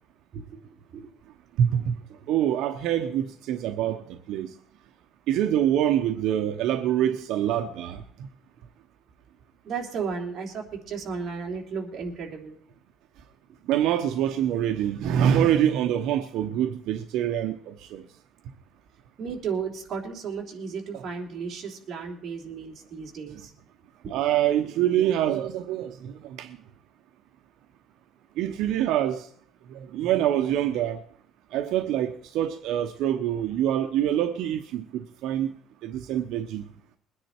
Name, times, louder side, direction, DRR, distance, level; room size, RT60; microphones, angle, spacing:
voice 1, 0.3-1.1 9.6-12.6 19.2-23.5 24.0-24.2 24.6-24.7, right 5 dB, 35° right, 3.4 m, -34 dB
voice 2, 1.6-2.0 2.3-4.5 5.3-8.3 13.7-18.1 20.9-21.0 24.1-26.6 28.4-29.3 29.7-31.0 31.5-35.5 35.8-36.6, right 10 dB, 65° right, 1.0 m, -25 dB
21.5 x 9.9 x 4.5 m
cardioid pair, 170°, 0 cm